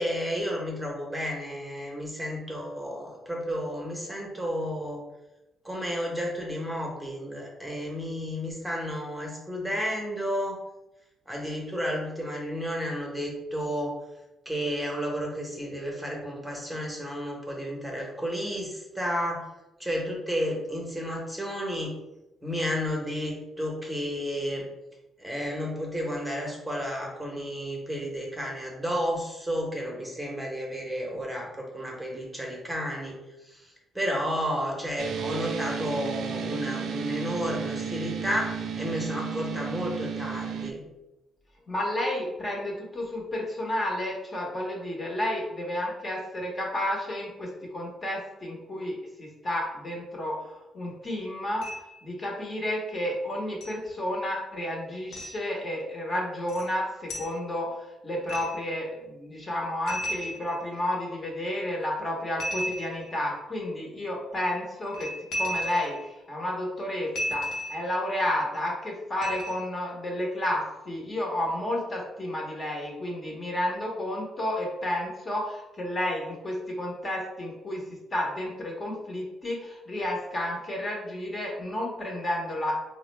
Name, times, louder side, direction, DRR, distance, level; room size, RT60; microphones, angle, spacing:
voice 1, 0.0-5.0 5.6-10.6 11.3-14.0 14.4-19.5 19.8-21.9 22.4-24.6 25.2-33.1 33.4-40.8, equal, 5° right, -2 dB, 0.9 m, -32 dB
sound 1, 35.0-40.7, right 6 dB, 70° right, 0.4 m, -33 dB
voice 2, 41.7-50.3 50.7-51.6 52.0-77.8 78.1-82.8, left 1 dB, 35° left, -1 dB, 0.9 m, -31 dB
sound 2, 51.6-52.0 53.6-53.7 55.1-55.4 56.5-56.7 57.1-57.4 58.3-58.7 59.9-60.9 62.4-63.2 64.8-66.1 67.2-68.0 69.2-69.8, equal, 85° left, 0.8 m, -34 dB
3.6 x 2.0 x 3.2 m, 0.95 s
cardioid pair, 90°, 0 cm